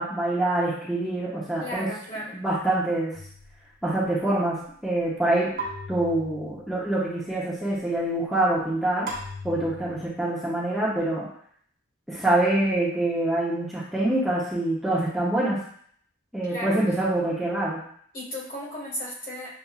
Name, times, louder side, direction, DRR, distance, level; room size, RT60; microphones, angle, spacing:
voice 1, 0.0-1.9 2.3-3.2 3.8-5.5 5.9-9.1 9.4-11.3 12.1-15.6 16.3-17.8, right 1 dB, ahead, -8 dB, 0.8 m, -25 dB
voice 2, 1.6-2.4 16.5-16.8 18.1-19.5, equal, 45° left, -6 dB, 1.8 m, -35 dB
sound 1, 3.1-3.8 5.6-6.9 9.1-10.1, right 1 dB, 45° right, 1.0 m, -38 dB
6.7 x 2.5 x 2.4 m, 0.62 s
head